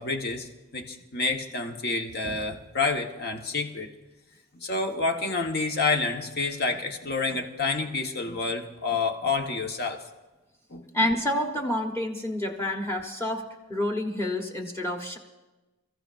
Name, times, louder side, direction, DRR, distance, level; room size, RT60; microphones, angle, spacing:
voice 1, 0.0-3.9 4.5-10.0 10.7-10.8, left 3 dB, 50° left, 3 dB, 1.3 m, -28 dB
voice 2, 10.9-13.4 13.7-15.2, left 1 dB, 10° left, 2 dB, 1.1 m, -28 dB
28.5 x 14.5 x 2.6 m, 1.1 s
head